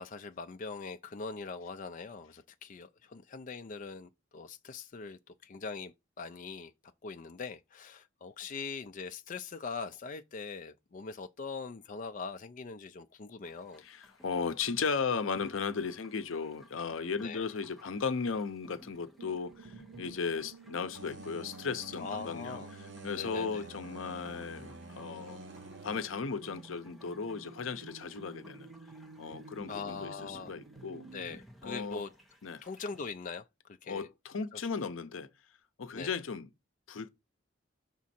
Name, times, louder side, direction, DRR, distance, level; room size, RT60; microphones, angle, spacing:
voice 1, 0.0-6.7 7.0-13.8 17.2-17.5 22.0-22.7 23.2-23.6 29.7-30.5 31.1-32.1 32.6-33.4 33.8-34.1 34.5-34.6 35.9-36.1, left 4 dB, 40° left, 0.4 m, -42 dB
sound 1, 13.4-33.1, equal, ahead, 0.8 m, -59 dB
voice 2, 13.8-22.6 23.0-25.4 25.8-28.7 29.2-31.0 31.6-32.1 32.4-32.6 33.9-35.3 35.8-36.5 36.9-37.1, left 5 dB, 85° left, 0.6 m, -36 dB
sound 2, 19.2-31.4, right 4 dB, 90° right, 0.5 m, -52 dB
sound 3, 20.9-26.0, right 2 dB, 60° right, 1.0 m, -49 dB
6.2 x 3.6 x 4.2 m
head